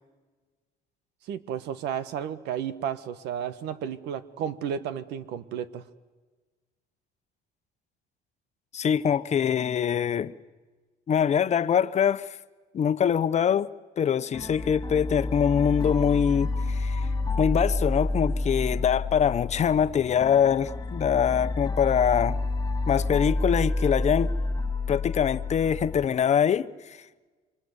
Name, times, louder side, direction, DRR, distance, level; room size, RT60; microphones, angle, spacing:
voice 1, 1.3-5.8, right 8 dB, 90° right, 1.5 m, -33 dB
voice 2, 8.7-10.3 11.1-12.4 12.7-13.7 14.0-17.0 17.4-22.4 22.9-24.3 24.9-27.0, left 8 dB, 40° left, 1.0 m, -24 dB
sound 1, 14.3-26.0, left 2 dB, 20° left, 2.5 m, -29 dB
26.5 x 25.5 x 8.2 m
cardioid pair, 110°, 17 cm